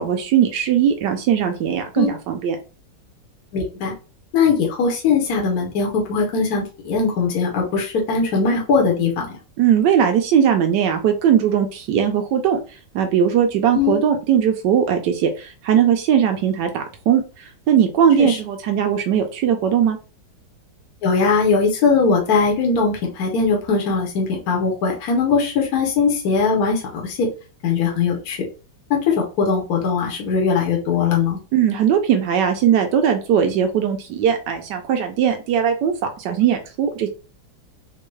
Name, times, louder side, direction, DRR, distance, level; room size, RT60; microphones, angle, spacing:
voice 1, 0.0-2.6 9.6-12.6 12.9-20.0 31.5-37.1, right 8 dB, 80° right, 5 dB, 1.2 m, -19 dB
voice 2, 3.5-3.9 4.3-9.3 13.7-14.0 18.2-18.4 21.0-27.3 27.6-28.4 28.9-31.4, left 5 dB, 60° left, 0 dB, 1.3 m, -20 dB
4.4 x 2.2 x 3.1 m, 0.33 s
omnidirectional pair, 1.9 m